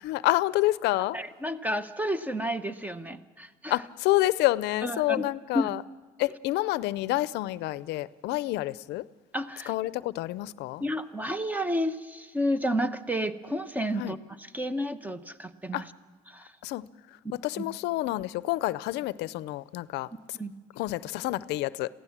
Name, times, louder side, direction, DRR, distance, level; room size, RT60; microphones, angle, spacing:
voice 1, 0.0-1.2 3.7-5.8 6.2-9.0 9.7-10.8 14.0-14.1 15.7-15.8 16.6-16.8 17.3-20.4 20.8-21.9, left 17 dB, 85° left, 18 dB, 0.5 m, -28 dB
voice 2, 1.1-3.8 4.8-5.2 5.5-5.7 9.3-9.7 10.8-15.9 16.3-16.5 17.2-17.7 20.3-20.5, equal, 10° right, 11 dB, 0.9 m, -31 dB
23.0 x 15.5 x 7.3 m, 1.4 s
cardioid pair, 110°, 17 cm